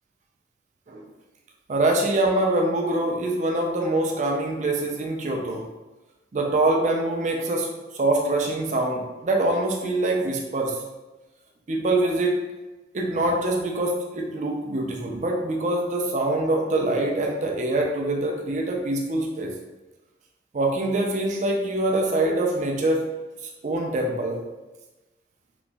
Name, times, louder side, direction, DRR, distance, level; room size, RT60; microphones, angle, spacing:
voice 1, 1.7-5.7 6.3-7.7 7.9-10.8 11.7-12.4 12.9-19.5 20.5-23.0 23.6-24.4, right 2 dB, 40° right, 1 dB, 0.4 m, -24 dB
3.0 x 2.5 x 2.2 m, 1.1 s
head